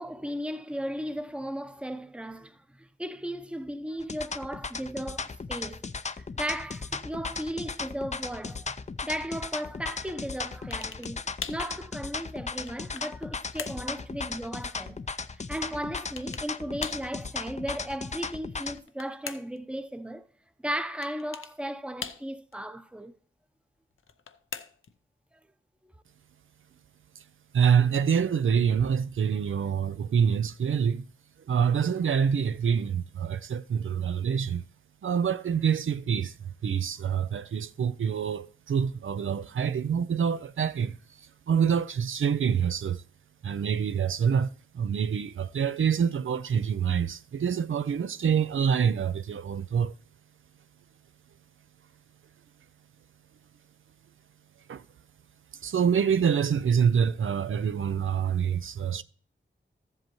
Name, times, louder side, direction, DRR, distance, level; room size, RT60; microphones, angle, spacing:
voice 1, 0.0-5.9 6.1-8.7 9.0-11.2 11.5-15.0 15.5-20.3 20.6-23.2 25.3-25.4, equal, 5° right, 0.7 m, -36 dB
sound 1, 4.0-18.8, left 4 dB, 35° left, 0.5 m, -36 dB
sound 2, 10.7-11.2 11.4-11.7 12.3-13.2 13.6-13.9 16.0-16.5 16.8-17.1 18.5-19.6 21.0-21.6 22.0-22.5 24.0-25.0, left 6 dB, 80° left, 0.6 m, -40 dB
voice 2, 27.5-31.1 31.5-34.6 35.0-41.0 41.5-43.0 43.4-49.9 54.7-54.8 55.6-59.0, right 7 dB, 80° right, 0.4 m, -26 dB
13.5 x 7.8 x 3.0 m
cardioid pair, 50°, 21 cm